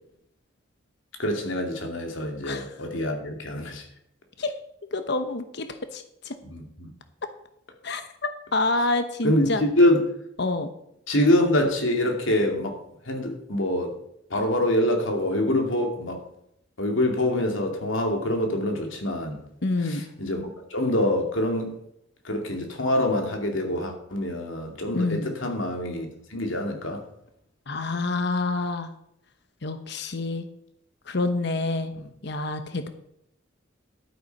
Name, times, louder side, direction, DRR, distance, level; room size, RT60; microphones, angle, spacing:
voice 1, 1.2-3.9 6.4-6.9 9.2-10.0 11.1-12.8 13.1-13.9 14.3-16.2 16.8-19.4 19.8-20.4 20.7-21.8 22.2-27.0 32.0-32.1, left 1 dB, 85° left, 3 dB, 2.5 m, -25 dB
voice 2, 4.9-5.7 5.9-6.3 7.8-9.6 10.4-10.7 19.6-20.1 24.9-25.3 27.7-28.9 29.6-30.5 31.1-31.9 32.2-32.9, left 2 dB, 60° left, 9 dB, 1.0 m, -27 dB
11.5 x 9.0 x 5.4 m, 0.74 s
head